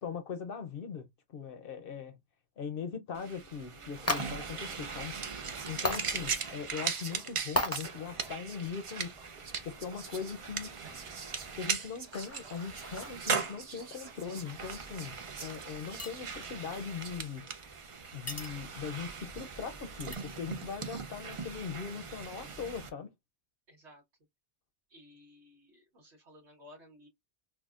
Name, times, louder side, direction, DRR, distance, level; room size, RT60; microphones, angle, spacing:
voice 1, 0.0-2.2 2.6-5.2 5.7-9.2 9.6-10.8 11.5-17.5 18.1-23.1, left 6 dB, 60° left, 0.8 m, -40 dB
sound 1, 3.1-22.9, right 5 dB, 45° right, 0.4 m, -39 dB
sound 2, 3.4-20.2, left 1 dB, 15° left, 0.6 m, -42 dB
Whispering, 3.4-3.6 4.0-17.3, right 5 dB, 65° right, 1.2 m, -50 dB
voice 2, 23.7-24.0 24.9-27.1, left 1 dB, 85° right, 1.6 m, -56 dB
6.0 x 2.2 x 2.4 m
omnidirectional pair, 1.1 m